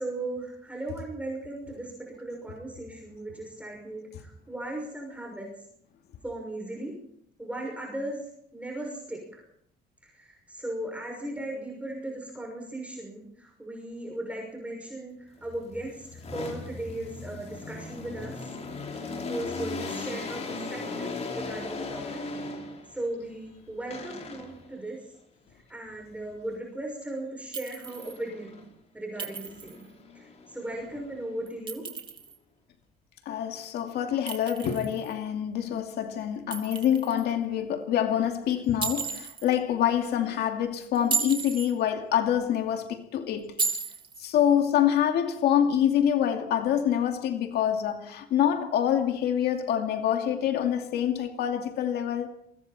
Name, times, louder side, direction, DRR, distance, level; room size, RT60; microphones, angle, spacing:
voice 1, 0.0-1.9 2.2-5.5 6.2-6.9 7.4-8.2 8.5-9.4 10.0-15.1 15.4-18.3 19.3-21.1 21.4-22.2 22.9-25.0 25.7-28.6 28.9-29.9 30.1-31.8, right 1 dB, 10° right, 6.1 m, -37 dB
sound 1, 15.4-23.0 23.9-24.7 27.9-28.7 29.2-31.5, left 3 dB, 40° left, 4.8 m, -38 dB
Chink clink, 27.5-28.2 29.2-29.8 31.5-32.4 34.3-35.1 36.5-37.2 38.8-39.5 40.9-41.7 43.6-44.2, right 5 dB, 30° right, 3.1 m, -33 dB
voice 2, 33.3-43.6 44.2-52.3, left 10 dB, 75° left, 2.5 m, -26 dB
28.0 x 23.0 x 4.3 m
cardioid pair, 110°, 17 cm